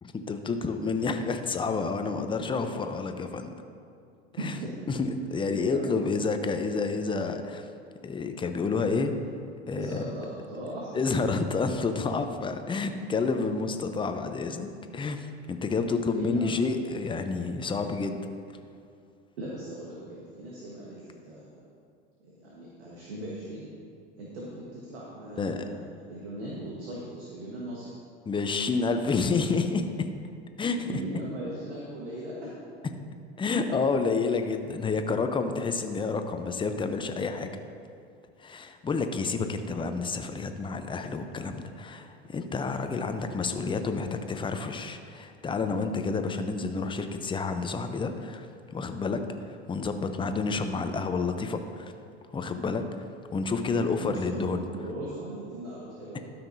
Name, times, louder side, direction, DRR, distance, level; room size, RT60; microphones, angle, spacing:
voice 1, 0.0-3.5 4.4-4.6 4.9-7.7 8.0-9.1 9.7-10.0 10.9-18.2 25.4-25.6 28.3-29.9 30.6-31.0 33.4-37.5 38.4-49.2 49.5-51.9 52.3-52.8 53.3-54.6, left 4 dB, 15° left, 7 dB, 0.6 m, -29 dB
voice 2, 4.4-4.7 5.4-5.9 9.7-10.9 16.2-16.5 19.4-21.0 21.2-21.6 22.3-23.7 24.2-25.8 26.1-27.9 30.8-32.4 53.7-56.2, right 1 dB, 85° right, -5 dB, 1.4 m, -38 dB
12.5 x 5.8 x 2.7 m, 2.4 s
hypercardioid pair, 85°, 33 cm